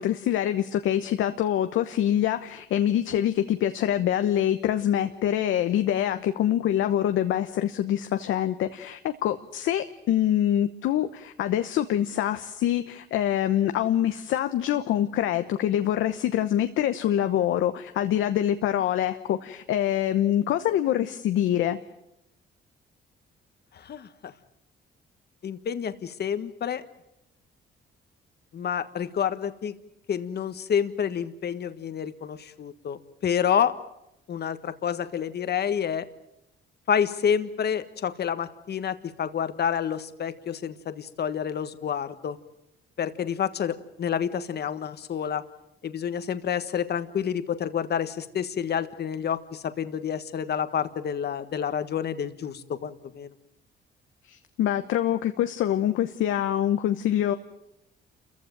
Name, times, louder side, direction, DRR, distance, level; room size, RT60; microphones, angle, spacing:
voice 1, 0.0-21.8 54.3-57.3, left 11 dB, 85° left, 9 dB, 1.1 m, -25 dB
voice 2, 23.7-24.3 25.4-26.8 28.5-29.7 30.1-33.7 34.3-36.1 36.9-42.4 43.0-45.4 45.8-53.3, left 8 dB, 55° left, 11 dB, 1.5 m, -29 dB
28.5 x 15.0 x 9.3 m, 0.85 s
cardioid pair, 90°, 20 cm